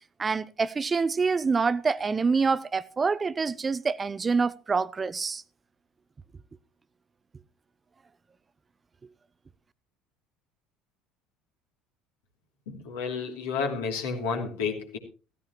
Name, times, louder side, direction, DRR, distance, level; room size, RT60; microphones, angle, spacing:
voice 1, 0.2-5.4, right 4 dB, 25° right, 0.7 m, -26 dB
voice 2, 12.7-15.0, left 5 dB, 70° left, 2.9 m, -31 dB
15.5 x 15.0 x 3.0 m
figure-of-eight pair, 65°, 0 cm